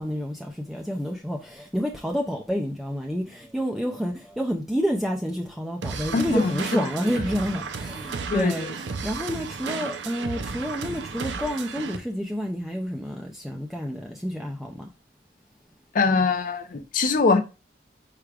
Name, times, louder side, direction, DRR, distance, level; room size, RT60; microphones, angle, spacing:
voice 1, 0.0-8.7 9.0-14.9, equal, ahead, 0.4 m, -29 dB
sound 1, 5.8-12.0, right 5 dB, 80° right, 0.6 m, -33 dB
voice 2, 6.1-7.2 8.3-8.8 15.9-17.4, left 4 dB, 50° left, 0.5 m, -23 dB
4.7 x 4.7 x 2.3 m
head